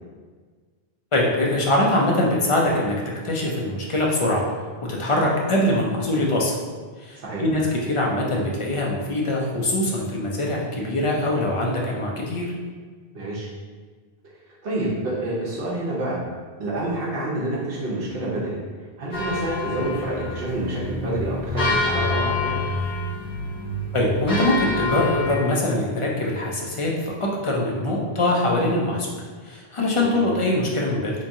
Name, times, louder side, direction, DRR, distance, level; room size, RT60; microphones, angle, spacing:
voice 1, 1.1-3.0 3.2-4.4 4.9-6.6 7.0-12.4 23.9-29.2 29.4-31.1, left 1 dB, 40° left, -2 dB, 0.5 m, -23 dB
voice 2, 13.1-13.5 14.6-16.2 16.6-18.6 19.0-22.6 30.0-30.1, right 1 dB, 65° right, -6 dB, 1.0 m, -28 dB
sound 1, 19.1-25.4, left 3 dB, 40° right, 1.3 m, -27 dB
3.4 x 3.0 x 2.7 m, 1.5 s
omnidirectional pair, 1.1 m